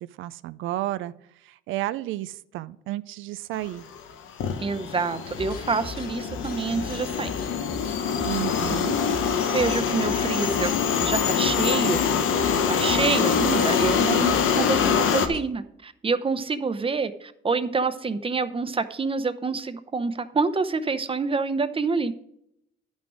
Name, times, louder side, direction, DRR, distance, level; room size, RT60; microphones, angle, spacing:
voice 1, 0.2-1.1 1.5-3.8 8.2-9.0, right 15 dB, 85° right, 15 dB, 0.4 m, -31 dB
sound 1, 3.9-4.1 4.4-15.3, left 7 dB, 85° left, 1.0 m, -24 dB
voice 2, 4.6-7.3 9.5-10.7 11.0-12.0 12.7-22.1, right 4 dB, 25° right, 11 dB, 0.8 m, -27 dB
sound 2, 5.3-15.4, left 3 dB, 50° left, 1.5 m, -40 dB
11.0 x 6.2 x 4.9 m, 0.76 s
cardioid pair, 90°, 20 cm